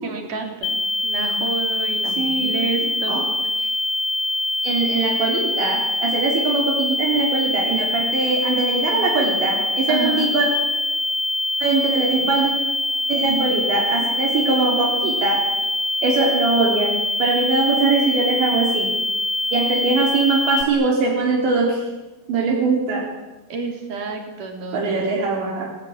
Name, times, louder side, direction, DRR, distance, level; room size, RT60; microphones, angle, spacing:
voice 1, 0.0-3.2 9.9-10.3 23.5-25.1, right 4 dB, 50° right, 3 dB, 5.1 m, -29 dB
sound 1, 0.6-20.6, left 2 dB, 75° left, 1.3 m, -24 dB
voice 2, 2.2-2.5 3.1-3.3 3.6-3.7 4.6-10.5 11.6-12.5 13.1-15.5 16.0-19.0 19.5-21.9 22.3-23.1 24.7-25.7, right 4 dB, 80° right, -1 dB, 5.9 m, -21 dB
28.5 x 19.5 x 8.9 m, 1.1 s
omnidirectional pair, 5.0 m